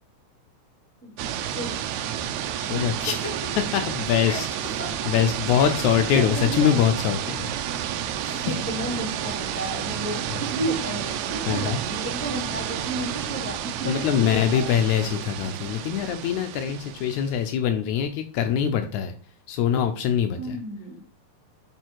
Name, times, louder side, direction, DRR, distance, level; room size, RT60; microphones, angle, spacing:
sound 1, 1.2-17.5, right 10 dB, 80° right, 1.8 m, -31 dB
voice 1, 1.5-1.8 2.7-2.9 3.2-3.3 4.2-4.4 4.8-4.9 5.6-6.7 8.3-14.7 20.4-21.0, right 1 dB, 5° left, -1 dB, 2.3 m, -33 dB
voice 2, 2.6-3.3 3.7-4.5 5.1-7.5 8.2-8.5 10.3-10.4 11.5-11.8 13.9-19.1 19.5-20.6, left 9 dB, 80° left, 7 dB, 1.9 m, -23 dB
7.7 x 4.9 x 4.6 m, 0.42 s
omnidirectional pair, 3.6 m